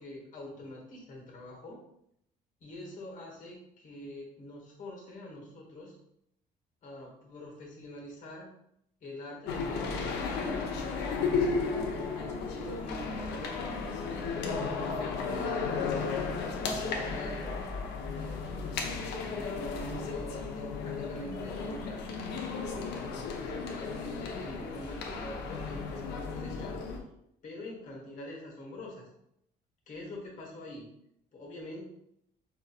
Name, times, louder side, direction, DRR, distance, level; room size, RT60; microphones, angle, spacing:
voice 1, 0.0-1.8 2.6-6.0 6.8-8.5 9.0-11.6 12.1-16.2 16.6-17.6 18.1-26.8 27.4-29.1 29.9-30.9 31.3-31.8, left 1 dB, 50° left, -1 dB, 1.2 m, -45 dB
sound 1, 9.5-27.0, left 4 dB, 85° left, 0.6 m, -34 dB
4.7 x 2.7 x 2.4 m, 0.76 s
cardioid pair, 110°, 17 cm